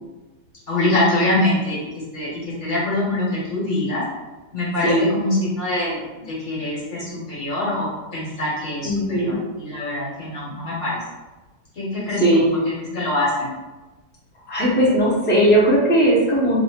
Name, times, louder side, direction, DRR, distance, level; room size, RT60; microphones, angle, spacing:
voice 1, 0.7-1.8 2.1-4.0 4.5-7.9 8.1-11.0 11.7-12.4 12.9-13.5, left 1 dB, 45° left, -8 dB, 1.4 m, -24 dB
voice 2, 8.8-9.4 12.2-12.5 14.5-16.6, right 1 dB, 15° left, -6 dB, 0.4 m, -17 dB
2.8 x 2.7 x 4.3 m, 1.2 s
omnidirectional pair, 2.0 m